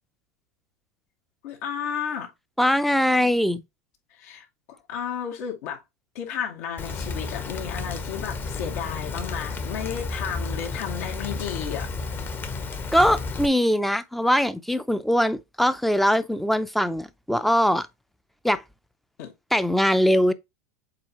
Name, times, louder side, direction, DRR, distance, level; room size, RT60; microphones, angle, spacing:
voice 1, 1.4-2.3 4.2-5.8 6.1-11.9 19.2-19.3, left 8 dB, 70° left, 2.4 m, -33 dB
voice 2, 2.6-3.6 12.9-17.9 18.4-18.6 19.5-20.3, equal, ahead, 0.5 m, -21 dB
Rain, 6.8-13.5, left 4 dB, 25° left, 1.0 m, -32 dB
7.6 x 4.4 x 2.9 m
supercardioid pair, 135°, 9 cm